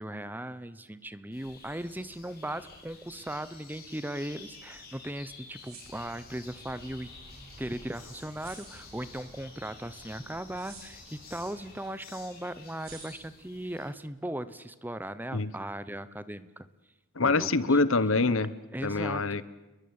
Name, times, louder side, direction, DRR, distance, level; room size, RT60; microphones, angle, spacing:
voice 1, 0.0-7.1 7.6-16.7 17.2-17.8 18.7-19.4, right 1 dB, 10° right, 14 dB, 0.9 m, -38 dB
sound 1, 1.3-13.9, left 4 dB, 45° left, 7.9 m, -51 dB
sound 2, 5.5-6.9 7.3-7.4 8.4-9.0 10.5-11.5 11.8-11.9 12.8-13.4, right 6 dB, 75° right, 6.2 m, -51 dB
sound 3, 5.8-11.7, right 1 dB, 30° right, 5.6 m, -53 dB
voice 2, 17.1-18.5 18.8-19.5, left 3 dB, 65° left, 17 dB, 1.1 m, -25 dB
29.0 x 22.0 x 8.8 m, 1.1 s
head